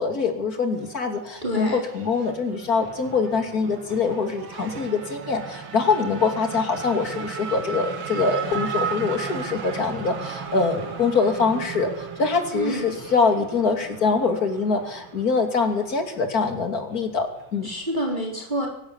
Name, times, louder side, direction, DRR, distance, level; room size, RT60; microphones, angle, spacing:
voice 1, 0.0-17.7, left 4 dB, 50° left, 5 dB, 3.2 m, -24 dB
Race car auto racing / Accelerating revving vroom, 0.7-17.7, right 6 dB, 85° right, 2.5 m, -36 dB
voice 2, 1.4-1.8 12.5-12.9 17.6-18.7, right 1 dB, 25° right, -1 dB, 3.9 m, -27 dB
24.0 x 12.5 x 8.9 m, 0.77 s
omnidirectional pair, 2.1 m